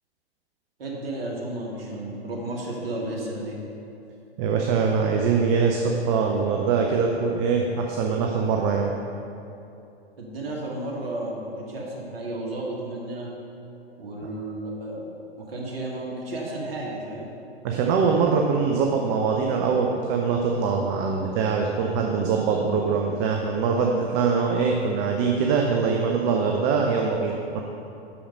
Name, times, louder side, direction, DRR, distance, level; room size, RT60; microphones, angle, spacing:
voice 1, 0.8-3.6 10.2-13.3 14.0-15.1 15.4-17.3, right 1 dB, 65° right, -3 dB, 1.8 m, -33 dB
voice 2, 4.4-8.9 17.6-27.6, right 5 dB, 25° right, 1 dB, 0.5 m, -23 dB
6.3 x 5.7 x 5.4 m, 2.8 s
figure-of-eight pair, 105°, 32 cm